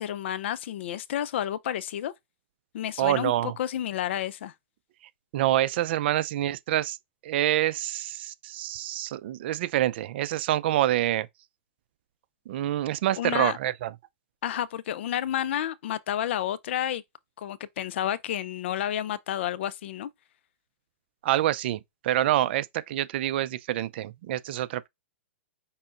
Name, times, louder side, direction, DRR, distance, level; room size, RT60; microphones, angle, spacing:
voice 1, 0.0-2.1 2.7-4.5 13.2-13.6 14.4-17.0 17.4-20.1, left 11 dB, 65° left, 0.5 m, -30 dB
voice 2, 3.0-3.6 5.3-7.0 7.2-11.3 12.5-13.9 21.2-24.9, right 13 dB, 55° right, 0.5 m, -26 dB
5.6 x 3.8 x 2.5 m
hypercardioid pair, 135°, 7 cm